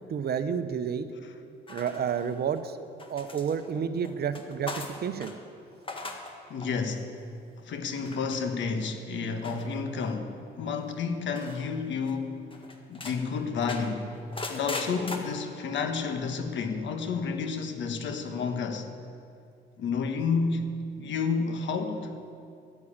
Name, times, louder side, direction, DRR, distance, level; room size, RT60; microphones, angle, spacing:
voice 1, 0.1-1.1 1.7-5.3, right 7 dB, 55° right, 11 dB, 0.8 m, -30 dB
sound 1, 1.7-2.6 3.0-5.4 5.7-6.3 6.6-7.0 7.9-8.4 9.4-10.2 11.3-11.7 12.1-12.2 12.5-13.2 13.6-15.2, left 3 dB, 25° left, 1.6 m, -39 dB
voice 2, 6.5-7.1 7.6-12.4 12.9-14.1 14.5-18.9 19.8-22.2, left 5 dB, 70° left, 6 dB, 1.3 m, -30 dB
11.0 x 9.7 x 8.7 m, 2.5 s
cardioid pair, 90°, 20 cm